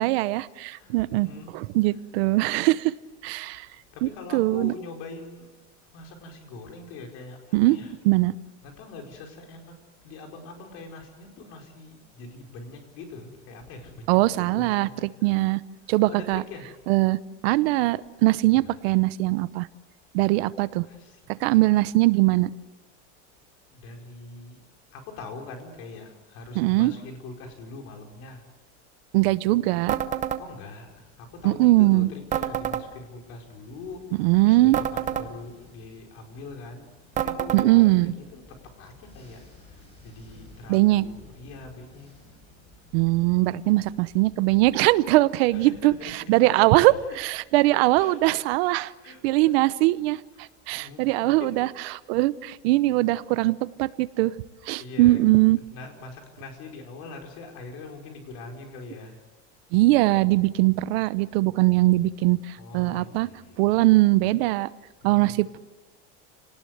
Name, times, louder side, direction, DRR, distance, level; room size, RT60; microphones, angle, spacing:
voice 1, 0.0-1.3 1.5-2.9 3.2-3.7 4.0-4.7 7.5-7.8 8.0-8.3 14.1-14.9 15.2-15.6 15.9-16.4 16.9-19.7 20.1-20.8 21.4-22.5 26.6-26.9 29.1-30.0 31.4-32.1 34.2-34.8 37.5-38.1 40.7-41.1 42.9-45.9 46.3-48.9 49.2-51.7 52.1-54.3 54.7-55.6 59.7-63.3 63.6-64.7 65.0-65.6, right 19 dB, 65° right, 16 dB, 0.9 m, -21 dB
voice 2, 0.7-1.6 3.9-5.5 5.9-7.9 8.6-9.8 10.0-15.5 16.1-16.8 18.6-18.7 20.8-21.9 23.7-24.6 24.9-28.4 30.4-36.9 37.2-38.4 38.8-39.4 40.0-42.1 45.5-46.5 46.8-47.2 48.0-48.3 48.6-49.6 50.3-50.4 50.7-51.6 53.3-53.5 54.7-55.2 55.5-59.2 62.6-63.7 65.0-65.4, left 3 dB, 45° left, 2 dB, 5.0 m, -43 dB
sound 1, 29.9-30.4 32.3-32.8 34.7-35.3 37.2-37.7, right 10 dB, 20° right, 0.9 m, -27 dB
sound 2, 30.8-45.2, left 2 dB, 20° left, 6.7 m, -54 dB
28.5 x 19.0 x 7.9 m, 1.2 s
cardioid pair, 170°, 33 cm